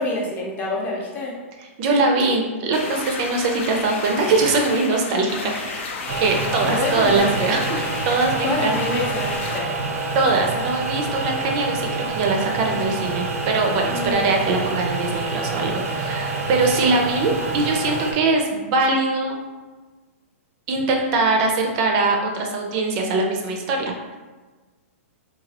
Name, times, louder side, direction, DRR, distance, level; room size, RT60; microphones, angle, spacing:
voice 1, 0.0-1.4 6.6-7.3 8.4-9.7 13.9-14.2, left 2 dB, 20° left, -2 dB, 0.6 m, -26 dB
voice 2, 1.8-5.9 6.2-8.8 10.1-19.4 20.7-24.2, right 3 dB, 35° right, 2 dB, 0.4 m, -22 dB
sound 1, 2.7-9.6, left 4 dB, 60° left, 0.4 m, -32 dB
sound 2, 6.1-18.1, right 3 dB, 90° right, 0.6 m, -27 dB
2.9 x 2.3 x 2.8 m, 1.3 s
hypercardioid pair, 145°, 8 cm